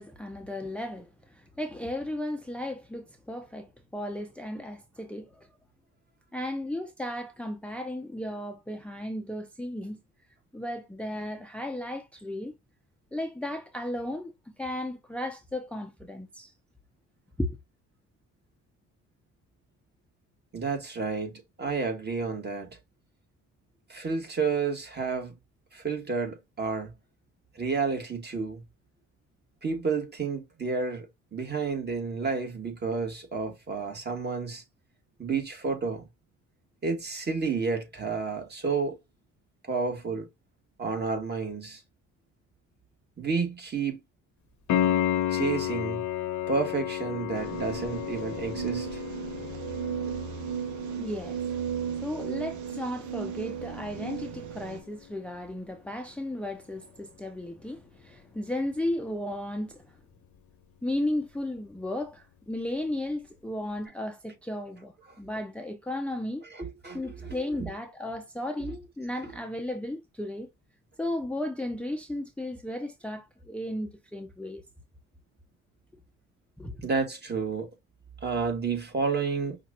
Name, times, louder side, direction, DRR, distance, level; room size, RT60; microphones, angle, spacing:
voice 1, 0.0-5.5 6.3-10.0 10.5-12.5 13.1-16.5 17.4-17.6 50.9-51.4 52.0-60.0 60.8-66.4 66.9-70.5 71.0-74.6 76.6-76.8, left 1 dB, 5° left, 0.6 m, -35 dB
voice 2, 20.5-22.8 23.9-25.4 25.7-26.9 27.6-28.6 29.6-34.6 35.2-36.1 36.8-39.0 39.7-40.3 40.8-41.8 43.2-44.0 45.3-46.0 46.5-49.0 66.5-67.7 69.2-69.3 76.8-77.7 78.2-79.6, right 4 dB, 35° right, 1.8 m, -30 dB
Piano, 44.7-55.3 58.7-58.8, left 11 dB, 70° left, 0.9 m, -33 dB
sound 1, 47.3-54.8, right 8 dB, 75° right, 0.8 m, -35 dB
5.7 x 2.5 x 2.7 m
cardioid pair, 90°, 30 cm